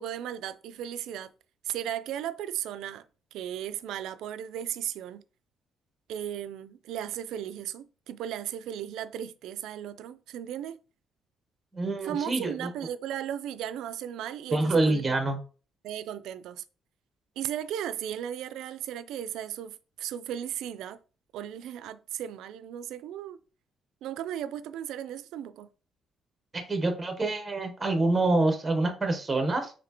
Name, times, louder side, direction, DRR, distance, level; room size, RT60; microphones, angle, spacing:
voice 1, 0.0-1.3 1.6-3.0 3.3-5.2 6.1-10.8 12.0-15.2 15.8-16.6 17.4-21.0 21.3-23.4 24.0-25.7, right 10 dB, 90° right, 0.3 m, -36 dB
voice 2, 11.7-12.7 14.5-15.4 26.5-29.7, right 2 dB, 10° right, 0.7 m, -26 dB
4.2 x 3.2 x 2.7 m
cardioid pair, 180°, 0 cm